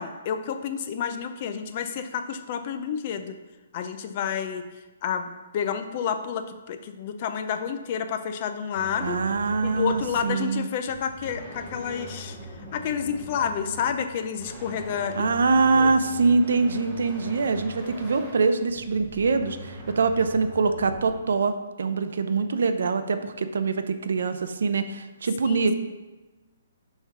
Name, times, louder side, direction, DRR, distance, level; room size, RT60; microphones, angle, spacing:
voice 1, 0.0-3.4 3.7-4.7 5.0-9.2 9.6-12.4 12.7-15.3 15.7-15.9 25.5-25.7, left 7 dB, 30° left, 8 dB, 0.4 m, -30 dB
sound 1, 8.7-21.2, equal, 5° right, 0.8 m, -41 dB
voice 2, 9.0-10.7 15.1-25.7, right 4 dB, 65° right, 9 dB, 0.6 m, -24 dB
5.7 x 4.4 x 5.8 m, 1.2 s
hypercardioid pair, 175°, 0 cm